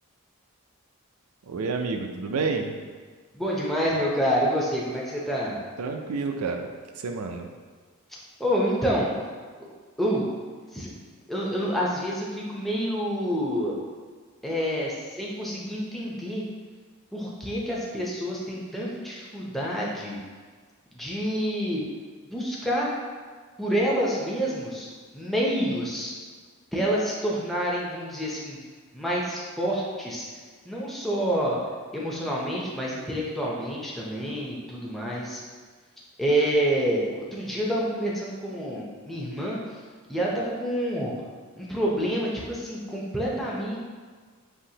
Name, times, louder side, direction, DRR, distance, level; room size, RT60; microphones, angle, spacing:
voice 1, 1.5-2.7 5.8-6.7 7.0-7.5, right 4 dB, 90° right, 5 dB, 0.5 m, -29 dB
voice 2, 3.3-5.6 8.4-9.1 9.6-9.7 10.0-10.2 10.7-10.9 11.3-13.8 14.4-16.4 17.1-20.2 20.9-21.8 22.3-22.9 23.6-24.9 25.1-26.1 26.7-28.6 28.9-30.3 30.7-31.6 31.9-35.4 36.2-39.6 40.1-41.2 41.6-43.8, equal, ahead, -5 dB, 0.6 m, -28 dB
5.6 x 2.9 x 2.8 m, 1.5 s
head